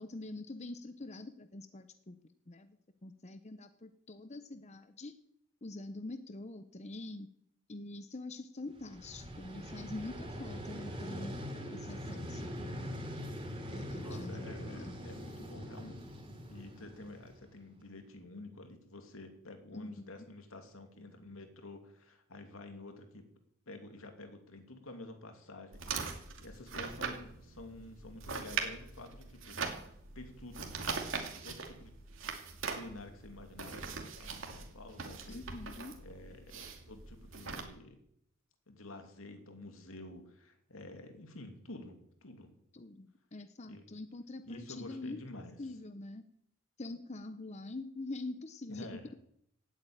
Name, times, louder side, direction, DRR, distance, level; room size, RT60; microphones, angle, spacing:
voice 1, 0.0-2.2 2.5-5.1 5.6-7.3 7.7-11.4 11.7-13.1 13.7-14.9 19.7-19.9 20.2-20.3 35.3-36.0 42.7-45.2 45.6-46.2 46.8-48.9, left 2 dB, 35° left, 10 dB, 0.8 m, -45 dB
Vehicle, 8.7-17.7, equal, 25° right, 3.0 m, -43 dB
voice 2, 14.0-16.1 16.5-23.3 23.7-30.7 31.4-31.9 32.2-32.3 32.7-35.4 36.0-38.0 38.7-42.5 43.7-43.8 44.4-45.6 48.7-49.1, left 2 dB, 85° left, 5 dB, 2.8 m, -50 dB
sound 1, 25.7-37.6, right 5 dB, 70° right, 2.6 m, -41 dB
17.0 x 8.5 x 8.8 m, 0.72 s
head